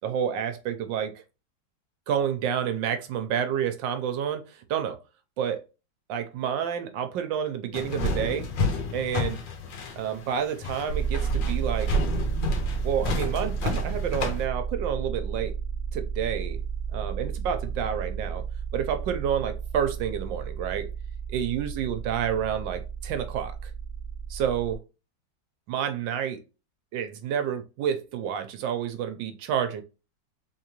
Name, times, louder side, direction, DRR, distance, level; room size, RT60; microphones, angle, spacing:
voice 1, 0.0-1.2 2.1-5.0 5.4-5.6 6.1-8.5 8.9-9.4 10.0-12.0 12.8-15.6 15.9-16.6 16.9-18.5 18.7-20.9 21.3-23.7 24.3-24.8 25.7-26.4 26.9-29.8, right 8 dB, 85° right, 1.4 m, -29 dB
sound 1, 7.7-14.5, left 2 dB, 80° left, 1.6 m, -30 dB
sound 2, 10.9-24.7, right 6 dB, 50° right, 0.9 m, -32 dB
3.7 x 3.6 x 2.9 m
omnidirectional pair, 2.0 m